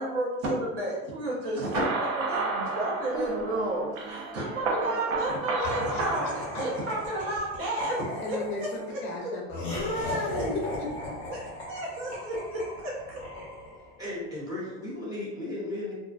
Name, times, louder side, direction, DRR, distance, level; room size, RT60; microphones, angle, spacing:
voice 1, 0.0-8.7 8.9-9.0 11.3-13.2, right 1 dB, 45° right, -4 dB, 0.8 m, -32 dB
sound 1, 1.6-7.4, right 3 dB, 70° right, 0.5 m, -32 dB
Speech, 2.9-6.3 6.7-7.8 8.1-8.2 8.5-8.6, equal, 30° right, 1.1 m, -50 dB
voice 2, 5.6-6.3 8.2-10.6, left 2 dB, 40° left, -1 dB, 0.5 m, -34 dB
Laughter, 5.6-14.0, left 1 dB, 15° left, 1.0 m, -38 dB
voice 3, 14.0-15.9, left 1 dB, 10° right, -7 dB, 0.8 m, -35 dB
2.4 x 2.1 x 2.4 m, 1.0 s
cardioid pair, 145°, 32 cm